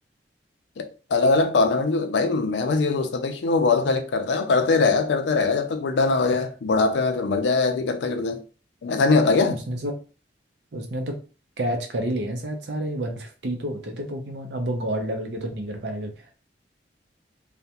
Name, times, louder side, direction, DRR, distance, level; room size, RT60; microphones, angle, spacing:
voice 1, 0.8-8.4 8.8-9.6, left 3 dB, 80° left, 0.4 m, -22 dB
voice 2, 10.7-11.2 11.6-16.4, right 1 dB, 65° right, 0.6 m, -29 dB
2.3 x 2.1 x 2.8 m
head